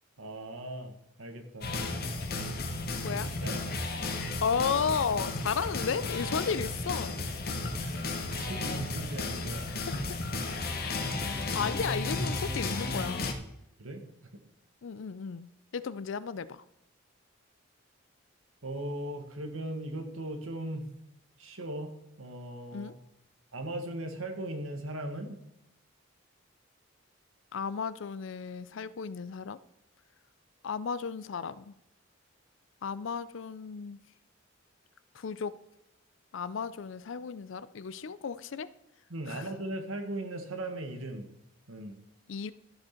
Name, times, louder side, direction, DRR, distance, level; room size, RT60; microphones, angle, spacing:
voice 1, 0.2-1.7 3.1-3.6 7.8-8.0 8.3-9.6 13.8-14.0 18.6-20.9 21.4-21.9 22.2-23.0 23.5-25.4 39.1-41.3 41.7-42.0, right 1 dB, 80° right, 1.5 m, -38 dB
sound 1, 1.6-13.3, left 2 dB, 45° left, 1.0 m, -33 dB
voice 2, 4.4-7.2 7.7-7.8 10.5-11.0 11.2-13.3 14.8-16.6 22.7-23.0 27.5-29.6 30.6-31.7 32.8-34.0 35.2-35.5 36.3-38.7 39.3-39.4 42.3-42.5, left 6 dB, 65° left, 0.4 m, -34 dB
12.5 x 6.2 x 4.5 m
head